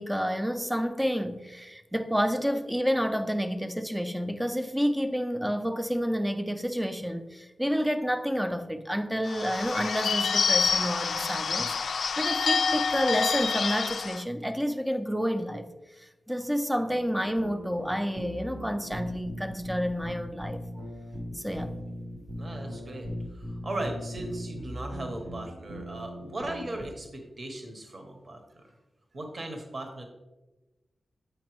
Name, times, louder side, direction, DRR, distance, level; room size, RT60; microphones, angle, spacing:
voice 1, 0.0-11.8 12.2-15.7 16.0-20.6 21.3-21.7, equal, 5° right, 0.4 m, -29 dB
Bird / Bell, 9.3-14.2, left 5 dB, 85° left, 0.3 m, -27 dB
sound 1, 16.8-26.9, equal, 85° right, 1.0 m, -39 dB
voice 2, 22.4-28.7 29.1-30.0, right 1 dB, 40° right, 0.9 m, -38 dB
7.9 x 5.3 x 3.0 m
wide cardioid pair, 155°, 0 cm